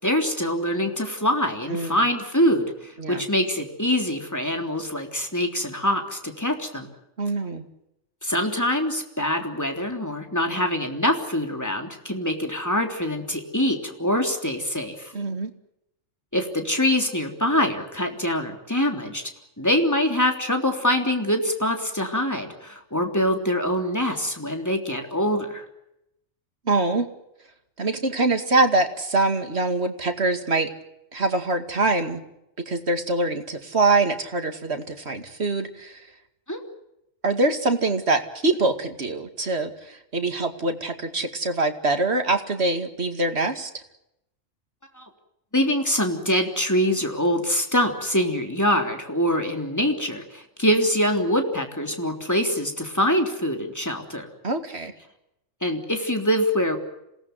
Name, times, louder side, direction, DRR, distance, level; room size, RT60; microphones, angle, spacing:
voice 1, 0.0-6.9 8.2-15.1 16.3-19.2 19.6-25.7 36.5-36.6 44.9-45.1 45.5-54.3 55.6-56.8, equal, 15° left, 4 dB, 3.4 m, -24 dB
voice 2, 7.2-7.6 15.1-15.5 26.7-27.1 27.8-30.7 31.1-32.2 32.6-36.0 37.2-43.8 54.4-54.9, right 2 dB, 55° right, 6 dB, 2.6 m, -24 dB
27.5 x 18.5 x 9.2 m, 0.85 s
omnidirectional pair, 1.3 m